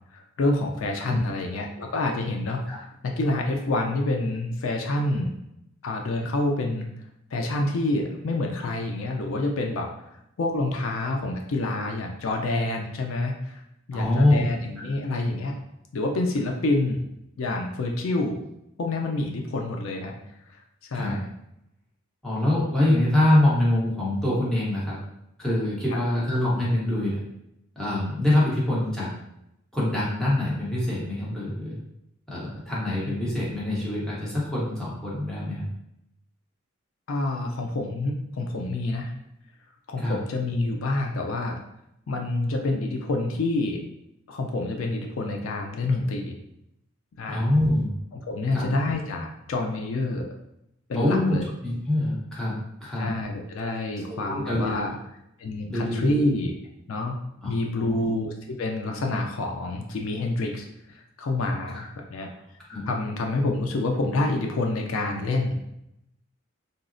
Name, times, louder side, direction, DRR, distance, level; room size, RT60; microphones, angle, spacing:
voice 1, 0.1-2.6 3.0-5.3 5.8-6.9 7.3-9.9 10.4-13.6 13.9-15.5 15.9-17.0 17.4-18.4 18.8-20.2 20.5-20.6 20.9-21.3 25.9-26.0 33.0-33.1 37.1-39.1 39.9-41.6 42.1-43.8 44.3-46.4 47.2-47.5 48.2-50.3 50.9-51.4 53.0-55.0 55.4-56.5 56.9-57.2 57.5-60.7 61.2-62.3 62.9-65.5, left 2 dB, 75° left, 2 dB, 0.4 m, -27 dB
voice 2, 13.9-14.5 14.8-14.9 20.9-21.1 22.2-25.0 25.4-27.2 27.8-29.1 29.7-31.7 32.3-35.7 40.0-40.2 47.3-47.9 48.5-48.7 50.9-53.1 53.6-53.7 54.1-55.0 55.7-56.2 57.4-58.1 61.7-61.8 62.7-62.8, left 1 dB, 5° left, -8 dB, 0.8 m, -25 dB
3.8 x 2.0 x 2.5 m, 0.83 s
head